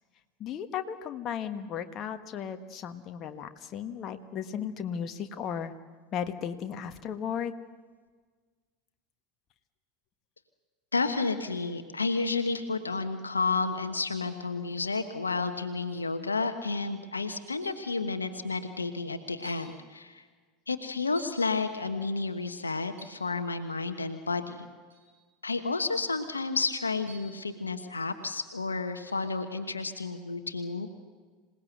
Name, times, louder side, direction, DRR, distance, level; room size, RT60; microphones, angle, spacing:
voice 1, 0.4-5.7 6.1-7.5, left 8 dB, 40° left, 8 dB, 1.4 m, -35 dB
voice 2, 10.9-20.2 20.7-24.7 25.4-30.9, left 3 dB, 85° left, 9 dB, 1.2 m, -31 dB
sound 1, 15.9-16.2 17.6-17.9 18.7-18.8 19.4-19.7 21.2-21.5 22.9-23.3 24.9-25.1 27.1-27.5 29.1-29.3, right 4 dB, 80° right, 6.8 m, -52 dB
26.5 x 18.5 x 7.9 m, 1.5 s
figure-of-eight pair, 80°, 0 cm